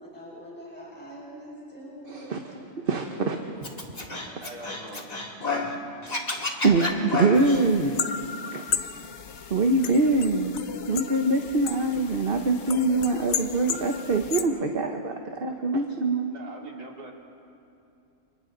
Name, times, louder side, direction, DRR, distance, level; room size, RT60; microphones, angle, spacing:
voice 1, 0.0-2.6 3.0-3.4, equal, 5° left, -6 dB, 6.0 m, -43 dB
voice 2, 2.1-2.5 2.9-3.4 6.6-8.0 8.5-8.7 9.5-10.5 10.9-15.1 15.4-16.3, right 2 dB, 40° right, 3 dB, 1.2 m, -24 dB
Scratching (performance technique), 3.6-5.7 6.0-7.6, left 3 dB, 25° left, 1.9 m, -30 dB
voice 3, 4.1-5.0 16.2-17.1, right 2 dB, 80° right, -1 dB, 3.5 m, -42 dB
sound 1, 7.3-14.4, left 7 dB, 50° left, 1.1 m, -34 dB
30.0 x 29.5 x 4.0 m, 2.7 s
omnidirectional pair, 1.7 m